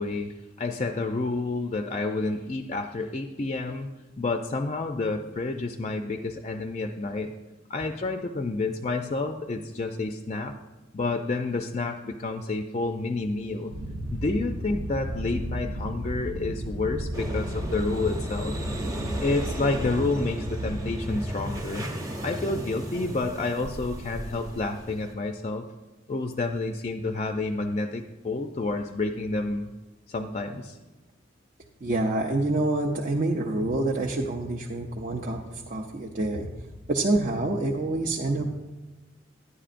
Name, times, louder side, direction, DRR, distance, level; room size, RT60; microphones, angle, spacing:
voice 1, 0.0-3.9 4.2-7.3 7.7-10.5 10.9-13.7 14.1-18.6 19.2-21.9 22.2-25.6 26.1-29.7 30.1-30.8, left 3 dB, 35° left, 5 dB, 0.4 m, -29 dB
sound 1, 13.7-21.2, equal, 85° right, 0.8 m, -34 dB
sound 2, 17.1-25.1, equal, 20° right, 1.0 m, -35 dB
voice 2, 31.8-36.5 36.9-38.5, right 2 dB, 45° right, -1 dB, 0.6 m, -27 dB
11.0 x 9.9 x 2.5 m, 1.2 s
head